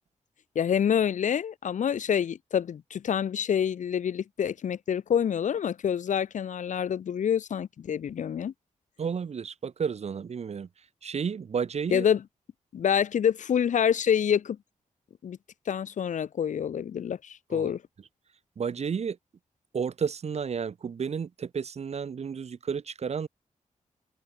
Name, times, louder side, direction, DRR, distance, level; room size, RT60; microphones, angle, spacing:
voice 1, 0.5-8.5 11.9-12.2 12.7-14.6 15.2-15.4 15.7-17.8, left 8 dB, 70° left, 0.8 m, -27 dB
voice 2, 9.0-10.7 11.0-12.1 17.5-17.7 18.6-19.2 19.7-23.3, right 6 dB, 55° right, 1.2 m, -32 dB
wide cardioid pair, 105°, 13 cm